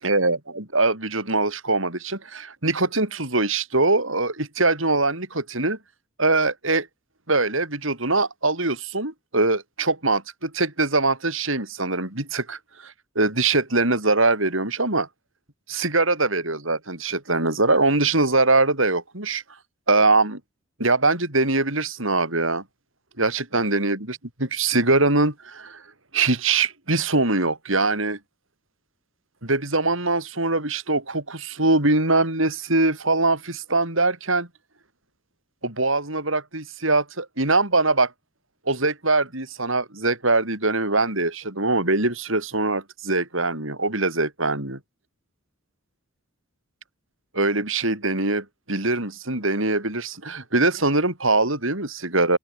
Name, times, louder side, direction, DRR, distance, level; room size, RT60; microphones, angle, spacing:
voice 1, 0.0-5.8 6.2-6.9 7.3-15.1 15.7-19.4 19.9-20.4 20.8-22.6 23.2-25.8 26.1-28.2 29.4-34.5 35.6-38.1 38.7-44.8 47.3-52.4, right 2 dB, 65° right, 7.0 m, -22 dB
open air
head